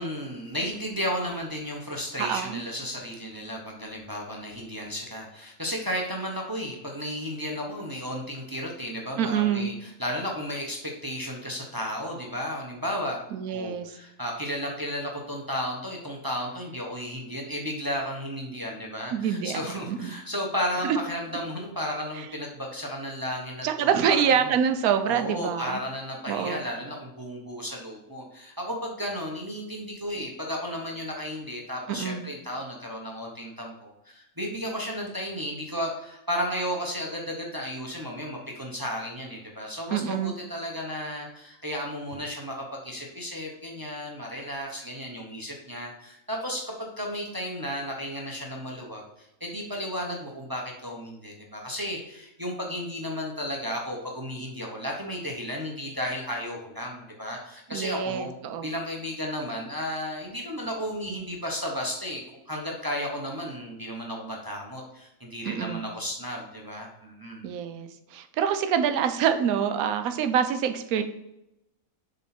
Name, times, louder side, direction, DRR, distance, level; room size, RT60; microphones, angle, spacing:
voice 1, 0.0-13.2 13.5-24.2 25.1-58.3 58.6-67.5, equal, 15° right, -1 dB, 0.9 m, -33 dB
voice 2, 2.2-2.6 9.2-9.7 13.3-13.9 19.1-20.2 20.8-21.0 22.2-22.3 23.6-25.8 26.3-26.6 31.9-32.2 39.9-40.3 57.7-58.7 65.4-65.8 67.4-71.0, right 8 dB, 80° right, 8 dB, 1.1 m, -26 dB
7.1 x 4.0 x 4.4 m, 0.87 s
omnidirectional pair, 1.5 m